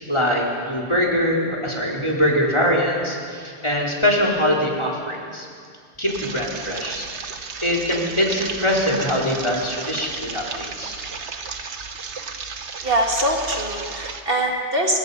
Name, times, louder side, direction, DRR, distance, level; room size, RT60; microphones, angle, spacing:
voice 1, 0.0-5.5 6.0-7.1 7.6-11.0, equal, 25° left, -2 dB, 3.4 m, -22 dB
sound 1, 6.1-14.2, right 5 dB, 80° right, 1.5 m, -34 dB
voice 2, 12.8-15.0, right 1 dB, 55° right, 0 dB, 2.4 m, -22 dB
25.5 x 21.0 x 5.4 m, 2.2 s
omnidirectional pair, 1.1 m